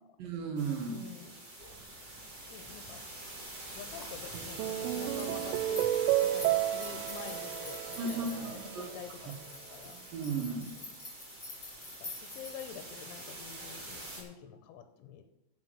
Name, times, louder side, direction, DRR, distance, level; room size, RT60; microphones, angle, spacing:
voice 1, 0.2-1.0 8.0-8.8 10.1-10.7, right 4 dB, 60° right, 3 dB, 2.7 m, -35 dB
sound 1, 0.6-14.2, right 1 dB, 30° right, 2.0 m, -45 dB
voice 2, 0.9-1.4 2.5-3.0 3.7-5.9 6.3-9.4 9.7-10.0 10.7-10.8 12.0-15.3, left 9 dB, 90° left, 8 dB, 3.1 m, -48 dB
sound 2, 1.6-12.7, left 2 dB, 20° left, 3.3 m, -49 dB
sound 3, 4.3-8.9, right 13 dB, 90° right, 3.1 m, -32 dB
8.4 x 8.0 x 7.0 m, 0.90 s
omnidirectional pair, 5.5 m